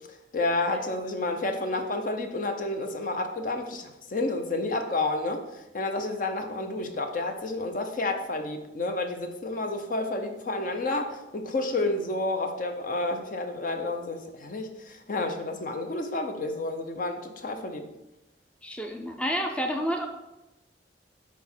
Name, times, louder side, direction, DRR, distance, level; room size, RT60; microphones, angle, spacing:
voice 1, 0.3-17.9, left 2 dB, 50° left, 5 dB, 0.7 m, -30 dB
voice 2, 18.6-20.1, equal, 5° left, 2 dB, 0.5 m, -29 dB
6.1 x 4.7 x 4.4 m, 0.97 s
head